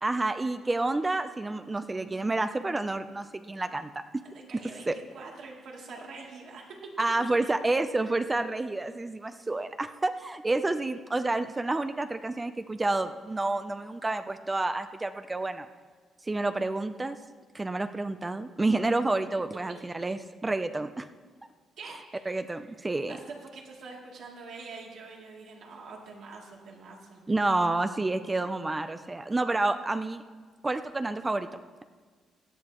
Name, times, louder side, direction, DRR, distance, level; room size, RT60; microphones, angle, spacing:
voice 1, 0.0-4.2 4.5-4.9 7.0-15.7 16.2-17.2 17.5-21.1 22.3-23.2 27.3-30.2 30.6-31.8, right 2 dB, 20° right, 9 dB, 0.5 m, -29 dB
voice 2, 4.5-6.7 19.7-19.8 21.8-22.3 23.1-27.2, right 4 dB, 70° right, -2 dB, 2.9 m, -45 dB
17.0 x 10.5 x 3.1 m, 1.5 s
cardioid pair, 90°, 0 cm